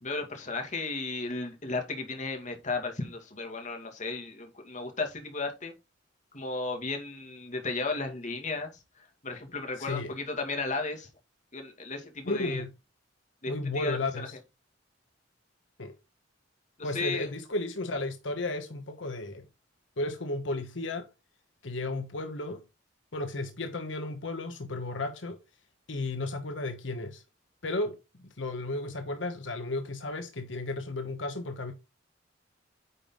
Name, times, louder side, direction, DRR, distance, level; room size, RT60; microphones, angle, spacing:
voice 1, 0.0-5.7 6.3-8.7 9.2-11.1 11.5-12.6 13.4-14.3 16.8-17.3, left 3 dB, 40° left, 2.3 m, -34 dB
voice 2, 9.8-10.1 12.2-12.7 13.5-14.3 15.8-16.0 16.8-19.4 20.0-21.1 21.6-22.6 23.1-25.4 25.9-27.2 27.6-31.7, left 2 dB, 75° left, 1.2 m, -34 dB
9.7 x 5.4 x 3.8 m
head